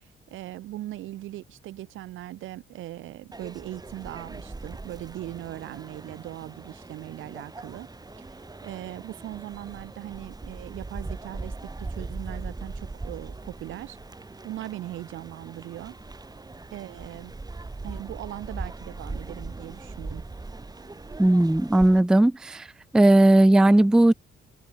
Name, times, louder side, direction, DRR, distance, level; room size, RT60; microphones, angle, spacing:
voice 1, 0.0-7.9 8.3-14.0 14.4-16.0 16.7-17.3 17.8-20.2, right 15 dB, 80° right, 1.1 m, -39 dB
sound 1, 3.3-22.0, right 3 dB, 20° right, 4.7 m, -40 dB
voice 2, 21.2-22.7 22.9-24.1, right 1 dB, 5° right, 0.3 m, -17 dB
cardioid pair, 90°, 20 cm